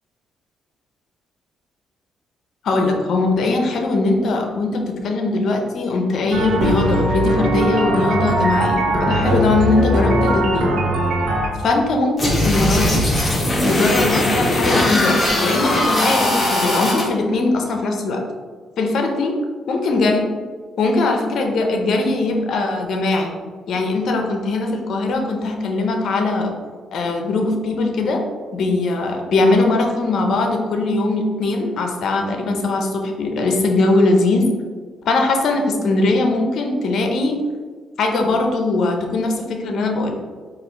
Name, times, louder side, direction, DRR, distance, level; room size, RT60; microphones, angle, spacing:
voice 1, 2.6-10.7 11.6-13.0 13.7-18.2 18.8-19.4 19.7-20.3 20.8-23.4 23.7-26.5 26.9-28.2 28.5-34.5 35.0-37.4 38.0-40.1, left 2 dB, 65° left, 2 dB, 0.6 m, -20 dB
sound 1, 6.3-11.5, right 1 dB, 80° right, 0.6 m, -20 dB
sound 2, 12.2-17.0, left 1 dB, 25° left, 1.0 m, -19 dB
4.5 x 2.5 x 3.0 m, 1.5 s
cardioid pair, 90°, 0 cm